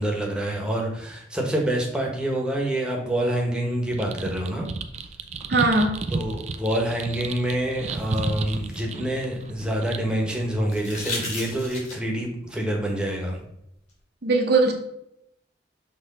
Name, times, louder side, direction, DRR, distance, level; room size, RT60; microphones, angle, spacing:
voice 1, 0.0-4.7 6.1-13.5, right 1 dB, 5° right, -1 dB, 1.2 m, -27 dB
sound 1, 3.9-11.3, right 3 dB, 35° right, 0.4 m, -33 dB
voice 2, 5.5-6.0 14.2-14.7, right 3 dB, 60° right, 3 dB, 0.9 m, -20 dB
sound 2, 7.5-9.8 10.7-12.2 13.9-14.0, left 2 dB, 40° left, 2.6 m, -36 dB
6.2 x 3.2 x 5.3 m, 0.79 s
head